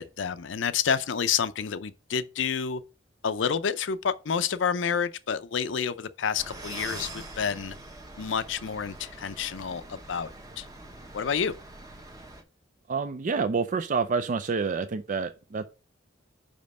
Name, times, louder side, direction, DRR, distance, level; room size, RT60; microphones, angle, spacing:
voice 1, 0.0-2.8 3.2-7.7 8.2-10.3 10.6-10.7 11.1-11.5, left 7 dB, 70° left, 0.5 m, -29 dB
sound 1, 6.4-12.4, right 2 dB, 20° right, 1.0 m, -43 dB
voice 2, 12.9-15.6, right 5 dB, 40° right, 0.4 m, -28 dB
5.2 x 5.1 x 5.3 m
head